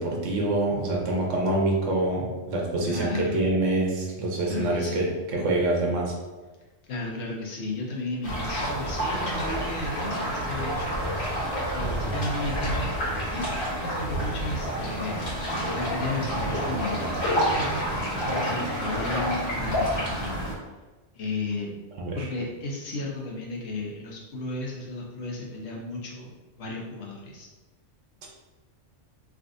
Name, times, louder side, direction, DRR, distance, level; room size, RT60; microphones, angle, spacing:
voice 1, 0.0-6.1 12.0-12.1 22.0-22.3 28.2-28.3, right 2 dB, 80° right, -1 dB, 1.1 m, -26 dB
voice 2, 2.8-3.4 4.5-5.1 6.8-11.0 11.7-12.9 13.2-17.1 17.5-17.8 18.2-20.5 21.1-21.7 22.1-26.3 26.6-27.5, left 2 dB, 65° left, -2 dB, 1.0 m, -34 dB
sound 1, 8.2-20.5, equal, 50° left, 1.2 m, -28 dB
3.4 x 2.5 x 2.5 m, 1.2 s
omnidirectional pair, 1.3 m